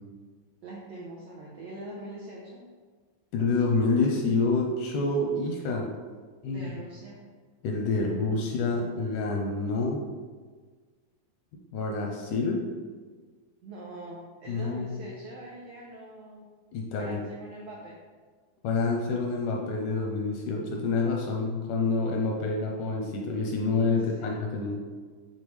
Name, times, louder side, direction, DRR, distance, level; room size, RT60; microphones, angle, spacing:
voice 1, 0.6-2.6 6.4-7.2 13.6-16.5 17.0-18.0 24.2-24.3, right 1 dB, 85° right, -3 dB, 1.5 m, -43 dB
voice 2, 3.3-5.9 6.4-6.7 7.6-10.1 11.7-12.7 14.5-15.0 16.7-17.2 18.6-24.8, left 3 dB, 80° left, 0 dB, 1.9 m, -27 dB
7.1 x 4.3 x 3.2 m, 1.5 s
omnidirectional pair, 4.1 m